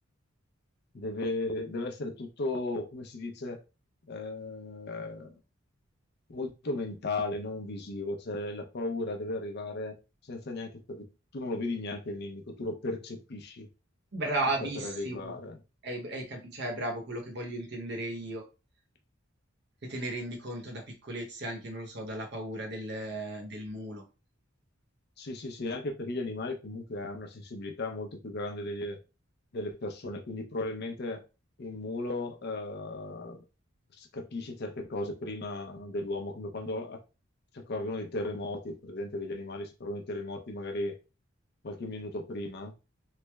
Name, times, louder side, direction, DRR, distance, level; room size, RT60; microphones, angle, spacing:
voice 1, 0.9-3.6 4.1-5.4 6.3-10.0 10.2-13.7 14.6-15.6 25.2-29.0 29.5-31.2 31.6-33.4 34.0-37.0 37.5-41.0 41.6-42.8, left 2 dB, 50° left, 0.6 m, -36 dB
voice 2, 14.1-15.4 15.8-18.4 19.8-24.1, right 2 dB, 50° right, 0.9 m, -35 dB
3.2 x 2.0 x 3.3 m
head